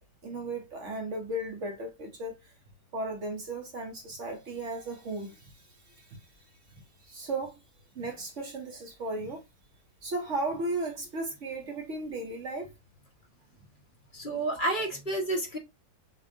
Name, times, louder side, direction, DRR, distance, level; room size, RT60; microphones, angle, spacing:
voice 1, 0.2-2.5 2.9-7.6 7.9-9.4 10.0-12.7, right 2 dB, 55° right, 1.1 m, -36 dB
voice 2, 14.1-15.6, right 2 dB, 35° left, 1.4 m, -30 dB
6.8 x 2.6 x 2.7 m
omnidirectional pair, 1.6 m